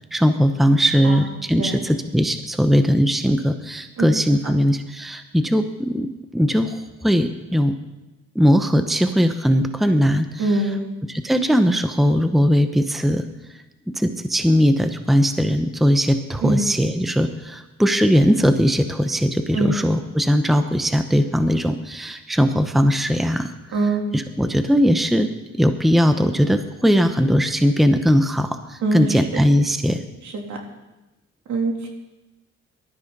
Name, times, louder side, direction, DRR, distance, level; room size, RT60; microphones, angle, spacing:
voice 1, 0.0-7.7 8.3-10.4 11.1-13.3 13.9-23.5 24.1-25.3 25.6-30.0, equal, ahead, 8 dB, 0.9 m, -19 dB
voice 2, 10.4-10.8 16.4-16.6 19.5-19.7 23.7-24.1 28.8-29.2 30.5-30.6 31.5-31.9, right 2 dB, 70° right, 0 dB, 3.4 m, -23 dB
19.5 x 13.0 x 4.1 m, 1.0 s
cardioid pair, 90°, 30 cm